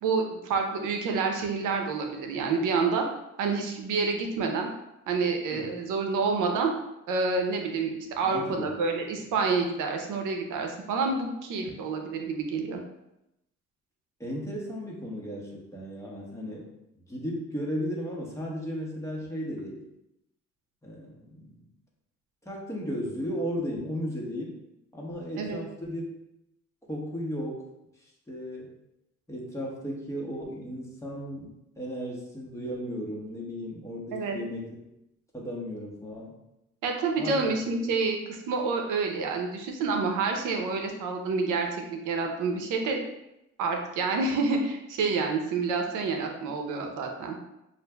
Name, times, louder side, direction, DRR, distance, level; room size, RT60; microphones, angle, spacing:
voice 1, 0.0-3.1 3.4-4.7 5.1-6.7 7.1-12.8 25.4-25.6 34.1-34.4 36.8-43.0 43.6-47.4, right 4 dB, 90° right, 3 dB, 0.7 m, -28 dB
voice 2, 8.2-8.7 14.2-16.7 17.1-19.8 20.8-21.6 22.4-24.6 24.9-26.0 26.9-27.6 28.0-28.7 29.3-34.7 35.3-36.3 37.2-37.5, equal, 10° left, -3 dB, 1.2 m, -35 dB
6.4 x 2.5 x 2.2 m, 0.87 s
cardioid pair, 90°, 30 cm